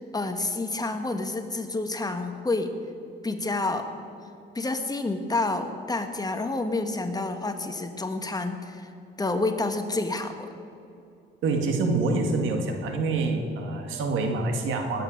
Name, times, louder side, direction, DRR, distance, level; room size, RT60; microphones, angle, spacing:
voice 1, 0.1-2.7 3.2-3.9 4.5-8.9 9.2-10.5, left 2 dB, 20° left, 6 dB, 1.5 m, -29 dB
voice 2, 11.4-15.0, right 3 dB, 80° right, 4 dB, 2.1 m, -26 dB
19.0 x 9.2 x 6.5 m, 2.6 s
cardioid pair, 90°, 20 cm